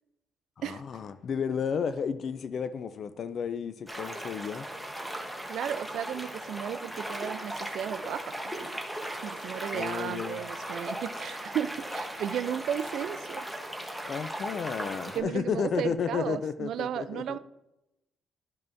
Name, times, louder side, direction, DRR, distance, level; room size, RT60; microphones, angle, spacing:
voice 1, 0.6-4.7 9.7-10.4 14.1-17.4, left 6 dB, 55° left, 12 dB, 0.4 m, -32 dB
sound 1, 3.9-15.2, right 1 dB, ahead, 1.1 m, -37 dB
voice 2, 5.5-8.8 9.2-13.5 15.1-17.4, right 9 dB, 75° right, 13 dB, 0.4 m, -34 dB
12.0 x 5.5 x 2.6 m, 0.90 s
cardioid pair, 90°, 0 cm